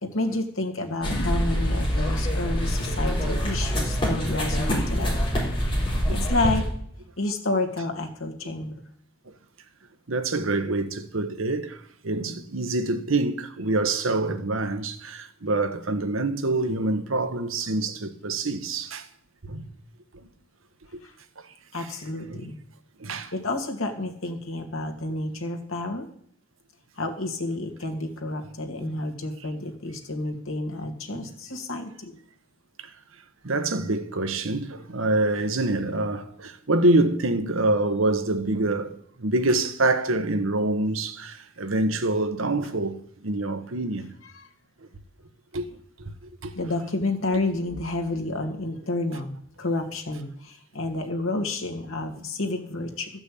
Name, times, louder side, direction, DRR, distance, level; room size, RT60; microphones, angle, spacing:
voice 1, 0.0-5.2 6.1-6.7 7.2-8.8 21.0-21.1 21.7-22.6 23.3-26.1 27.0-32.2 44.3-44.5 46.5-53.1, left 2 dB, 85° left, 2.2 m, -30 dB
sound 1, 1.0-6.7, equal, 25° left, 4.4 m, -25 dB
voice 2, 10.1-11.8 12.0-19.1 19.5-19.7 21.8-21.9 22.3-22.5 23.0-23.3 28.8-28.9 31.1-31.3 33.4-44.1 45.5-45.7 46.4-46.5, right 2 dB, 85° right, 1.1 m, -26 dB
13.5 x 6.1 x 8.5 m
head